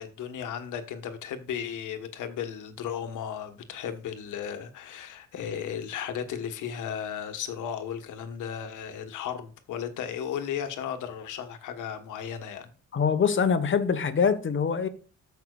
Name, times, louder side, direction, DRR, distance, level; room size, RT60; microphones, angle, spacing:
voice 1, 0.0-12.7, left 8 dB, 80° left, 1.4 m, -35 dB
voice 2, 12.9-14.9, left 6 dB, 40° left, 1.3 m, -24 dB
14.0 x 5.9 x 2.4 m
cardioid pair, 90°, 30 cm